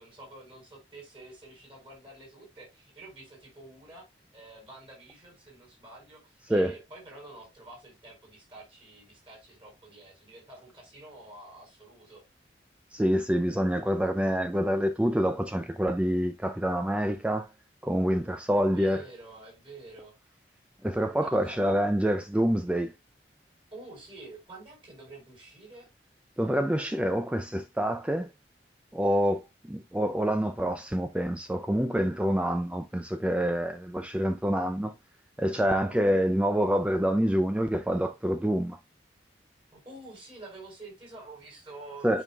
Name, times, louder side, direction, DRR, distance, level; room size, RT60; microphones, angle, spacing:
voice 1, 0.0-4.1 4.3-12.2 18.5-20.1 21.2-21.6 23.7-25.9 35.5-36.1 39.7-42.2, right 2 dB, 30° right, 4.6 m, -48 dB
voice 2, 12.9-17.5 17.8-19.0 20.8-22.9 26.4-28.3 28.9-35.0 35.4-38.8 42.0-42.2, equal, 5° right, 0.3 m, -27 dB
11.0 x 5.3 x 2.3 m
head